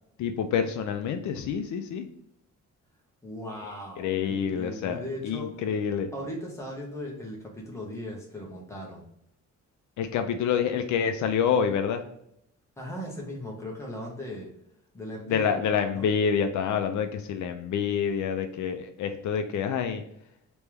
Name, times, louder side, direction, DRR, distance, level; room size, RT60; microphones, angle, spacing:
voice 1, 0.2-2.1 4.0-6.1 10.0-12.1 15.3-20.0, left 7 dB, 75° left, 7 dB, 0.5 m, -27 dB
voice 2, 3.2-5.5 6.1-9.1 12.8-14.5 14.9-16.1, left 1 dB, 10° left, -2 dB, 0.9 m, -38 dB
3.3 x 3.0 x 3.4 m, 0.73 s
cardioid pair, 175°, 30 cm